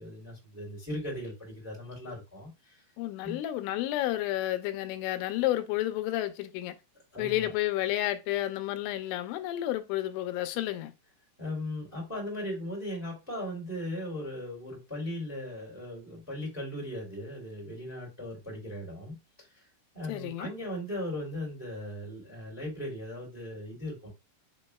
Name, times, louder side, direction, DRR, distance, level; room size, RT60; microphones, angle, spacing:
voice 1, 0.0-2.8 3.2-3.4 7.1-7.5 11.4-19.6 19.9-24.1, left 1 dB, 5° right, 1.3 m, -38 dB
voice 2, 3.0-6.8 7.2-10.9 20.1-20.5, left 14 dB, 90° left, 3.1 m, -31 dB
6.9 x 2.9 x 2.2 m
omnidirectional pair, 5.5 m